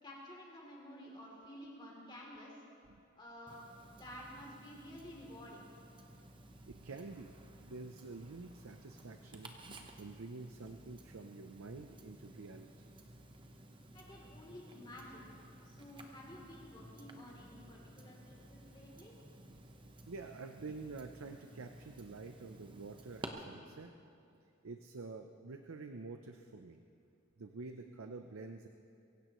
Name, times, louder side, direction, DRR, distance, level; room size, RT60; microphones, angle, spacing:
voice 1, 0.0-2.6 3.1-5.7 13.9-15.3 15.6-19.1, left 1 dB, 20° left, -4 dB, 3.1 m, -52 dB
Tick-tock, 3.5-23.3, right 1 dB, 25° right, 0.9 m, -55 dB
voice 2, 6.7-12.9 20.1-23.9 24.6-26.8 27.4-28.7, right 3 dB, 80° right, 6 dB, 0.6 m, -48 dB
23.5 x 16.5 x 3.1 m, 2.5 s
head